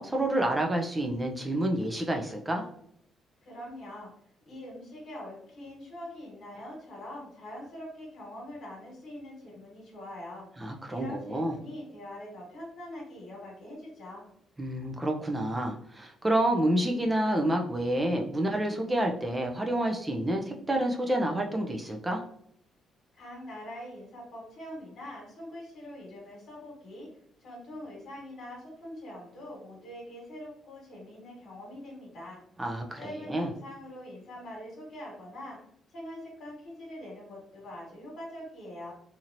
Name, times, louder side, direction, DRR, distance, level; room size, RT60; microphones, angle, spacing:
voice 1, 0.0-2.6 10.6-11.5 14.6-22.2 32.6-33.5, right 1 dB, 15° right, 2 dB, 0.5 m, -29 dB
voice 2, 3.4-4.1 4.5-10.5 10.9-14.2 23.1-27.1 27.4-32.4 33.0-35.6 35.9-38.9, left 1 dB, 70° left, -3 dB, 1.3 m, -43 dB
2.8 x 2.8 x 2.6 m, 0.68 s
cardioid pair, 90°, 0 cm